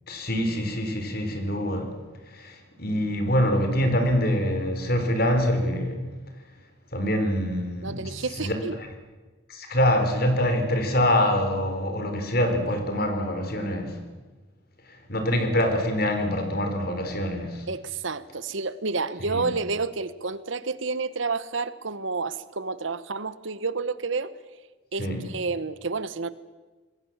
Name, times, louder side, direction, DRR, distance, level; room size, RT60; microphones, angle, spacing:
voice 1, 0.1-2.0 2.3-6.0 6.9-8.6 9.5-14.0 15.1-17.6 19.3-19.5 25.0-25.2, left 1 dB, 50° left, 6 dB, 4.2 m, -25 dB
voice 2, 7.8-8.8 17.7-24.3 24.9-26.3, right 4 dB, 75° right, 15 dB, 1.1 m, -30 dB
26.5 x 21.0 x 7.4 m, 1.3 s
head